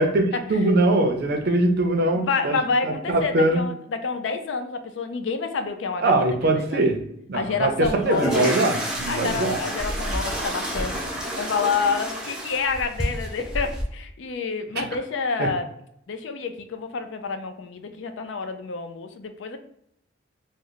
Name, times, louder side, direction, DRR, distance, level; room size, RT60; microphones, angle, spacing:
voice 1, 0.5-2.6 2.8-3.6 6.0-7.0 7.3-9.6 14.8-14.9 15.4-15.5, right 2 dB, 50° right, 4 dB, 0.5 m, -22 dB
voice 2, 2.1-6.2 6.4-6.9 7.3-8.4 9.1-11.0 11.4-15.7 16.1-19.6, left 4 dB, 65° left, 7 dB, 0.4 m, -28 dB
sound 1, 7.8-13.8, equal, 5° right, 0.5 m, -29 dB
3.1 x 2.0 x 3.8 m, 0.73 s
head